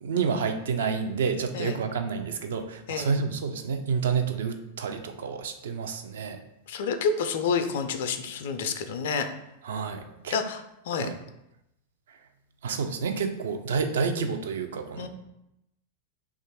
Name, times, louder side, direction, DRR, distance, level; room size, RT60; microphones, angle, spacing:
voice 1, 0.0-6.4 9.6-10.4 10.9-11.2 12.6-15.1, right 5 dB, 60° right, 7 dB, 0.4 m, -29 dB
voice 2, 6.7-9.3 10.3-11.1 15.0-15.1, left 5 dB, 55° left, 8 dB, 0.3 m, -29 dB
3.0 x 2.3 x 4.3 m, 0.85 s
figure-of-eight pair, 90°, 0 cm